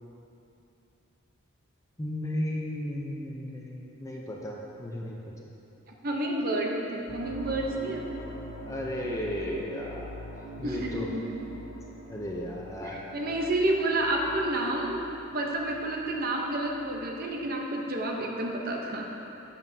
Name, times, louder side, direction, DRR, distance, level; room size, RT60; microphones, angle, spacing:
voice 1, 2.0-5.5 8.6-10.3 10.6-11.1 12.1-13.0, left 1 dB, 15° left, -2 dB, 0.6 m, -34 dB
voice 2, 6.0-8.2 10.6-11.4 12.9-15.0 15.3-19.1, right 1 dB, 45° right, 0 dB, 0.8 m, -30 dB
sound 1, 7.1-17.3, equal, 70° left, 1.5 m, -44 dB
10.5 x 7.2 x 2.7 m, 3.0 s
head